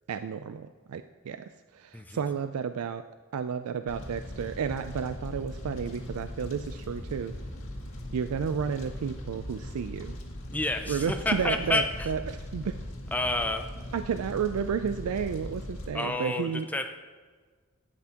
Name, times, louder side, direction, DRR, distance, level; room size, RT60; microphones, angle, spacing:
voice 1, 0.1-3.0 3.3-7.3 8.1-10.2 10.9-12.8 13.9-16.7, right 6 dB, 90° right, 10 dB, 0.4 m, -32 dB
Fire, 3.9-15.9, left 1 dB, 60° left, 2.1 m, -39 dB
voice 2, 10.5-12.1 13.1-13.7 15.9-16.9, left 2 dB, 5° left, 6 dB, 0.4 m, -29 dB
11.5 x 9.8 x 2.9 m, 1.5 s
head